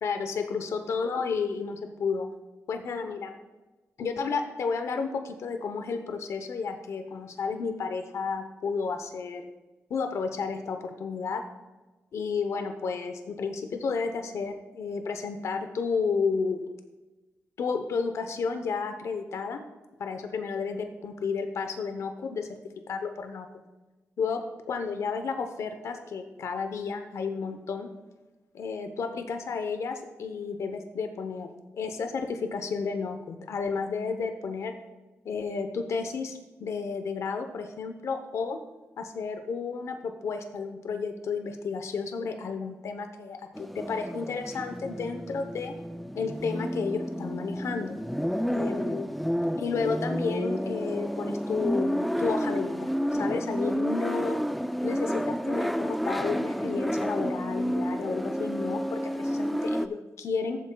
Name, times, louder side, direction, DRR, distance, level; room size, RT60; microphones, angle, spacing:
voice 1, 0.0-2.3 2.7-3.3 4.0-9.4 9.9-11.4 12.1-16.6 17.6-19.6 20.0-22.5 22.9-23.5 24.2-24.4 24.7-27.9 28.5-31.5 31.7-34.7 35.2-38.6 39.0-45.7 46.1-48.0 48.5-49.1 49.6-54.4 54.8-60.6, left 5 dB, 75° left, 6 dB, 0.7 m, -32 dB
sound 1, 43.5-59.9, equal, ahead, 0.3 m, -30 dB
14.0 x 7.3 x 2.2 m, 1.1 s
cardioid pair, 90°, 5 cm